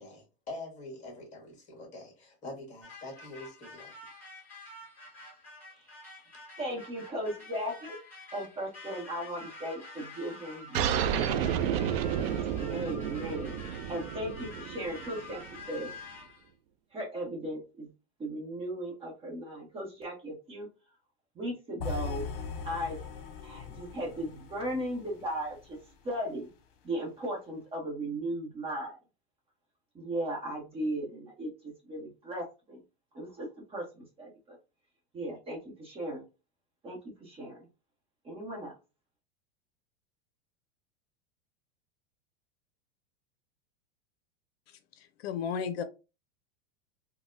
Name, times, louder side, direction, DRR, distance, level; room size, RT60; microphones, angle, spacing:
voice 1, 0.0-3.9, left 2 dB, 25° left, 1.5 m, -45 dB
sound 1, 2.8-16.5, left 2 dB, 5° left, 1.7 m, -48 dB
voice 2, 6.6-8.0 8.3-11.4 12.4-15.4 15.7-15.9 16.9-17.9 18.2-20.7 21.4-22.3 22.6-23.0 23.4-25.8 26.0-26.5 26.8-29.0 29.9-32.8 33.1-34.6 35.1-36.2 36.8-37.6 38.2-38.7, right 1 dB, 20° right, 0.8 m, -37 dB
sound 2, 10.7-15.8, right 9 dB, 70° right, 0.5 m, -31 dB
sound 3, 21.8-25.9, left 5 dB, 65° left, 0.9 m, -40 dB
voice 3, 45.0-45.8, left 7 dB, 80° left, 0.5 m, -34 dB
4.0 x 2.1 x 2.5 m
supercardioid pair, 150°, 31 cm